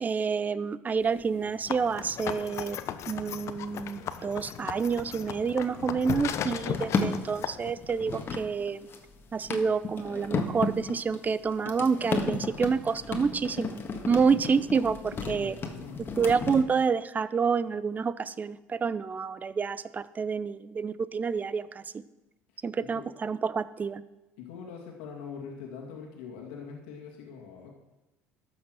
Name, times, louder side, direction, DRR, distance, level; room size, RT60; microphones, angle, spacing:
voice 1, 0.0-2.8 3.1-8.9 9.3-13.8 14.1-15.6 16.2-21.8 22.6-24.0, right 5 dB, 30° right, 16 dB, 0.6 m, -28 dB
sound 1, 1.0-16.6, left 4 dB, 40° left, 1.6 m, -35 dB
sound 2, 1.7-7.7, left 9 dB, 55° left, 0.8 m, -36 dB
voice 2, 15.1-16.0 22.8-23.0 24.4-27.7, left 6 dB, 85° left, 0 dB, 2.0 m, -43 dB
12.5 x 6.3 x 6.3 m, 1.0 s
supercardioid pair, 80°, 6 cm